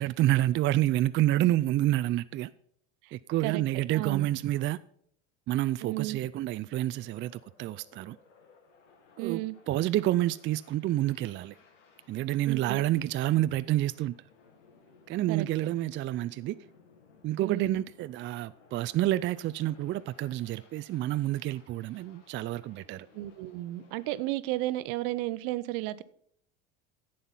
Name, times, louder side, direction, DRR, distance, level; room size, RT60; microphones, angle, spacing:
voice 1, 0.0-2.5 3.1-4.8 5.5-8.2 9.2-11.6 12.1-14.1 15.1-16.6 17.2-23.1, right 14 dB, 35° right, 0.4 m, -28 dB
voice 2, 3.9-4.3 5.8-6.2 9.2-9.6 12.5-12.8 15.3-15.5 17.4-17.8 23.1-26.0, right 16 dB, 65° right, 0.7 m, -33 dB
sound 1, 6.0-24.3, left 5 dB, 90° left, 1.8 m, -61 dB
11.0 x 7.7 x 5.6 m
hypercardioid pair, 80°, 36 cm